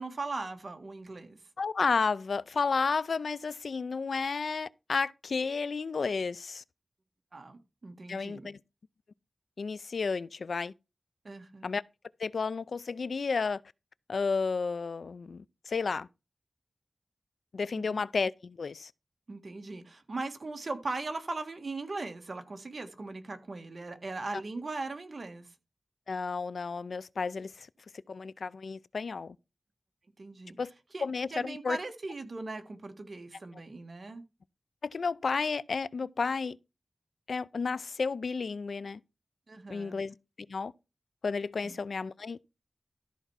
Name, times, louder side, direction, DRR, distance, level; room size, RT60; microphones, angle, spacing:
voice 1, 0.0-1.4 7.3-8.5 11.2-11.7 17.8-18.0 19.3-25.5 30.2-30.6 30.9-31.0 31.3-34.2 39.5-40.0 41.6-41.8, right 3 dB, 55° right, 1.6 m, -39 dB
voice 2, 1.6-6.6 8.1-8.6 9.6-10.7 11.6-11.8 12.2-13.6 14.1-16.1 17.5-18.9 26.1-27.7 28.1-29.4 30.6-30.7 31.0-31.8 34.8-36.6 37.3-39.0 39.7-40.7 41.2-42.4, left 4 dB, 85° left, 0.4 m, -32 dB
13.5 x 4.6 x 5.6 m
wide cardioid pair, 75°, 0 cm